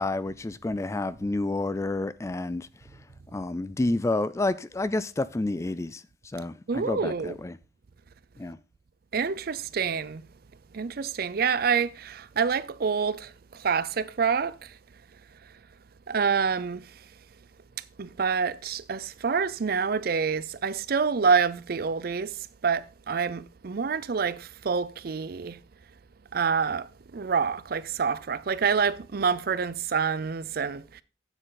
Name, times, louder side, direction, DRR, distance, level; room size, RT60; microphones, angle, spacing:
voice 1, 0.0-2.7 3.3-6.0 6.3-7.6 8.4-8.6, left 2 dB, 15° left, 0.3 m, -29 dB
voice 2, 6.7-7.4 9.1-10.2 10.7-14.6 16.1-16.9 18.0-22.4 22.6-25.6 26.3-31.0, right 6 dB, 55° right, 0.5 m, -27 dB
9.1 x 7.7 x 3.8 m
head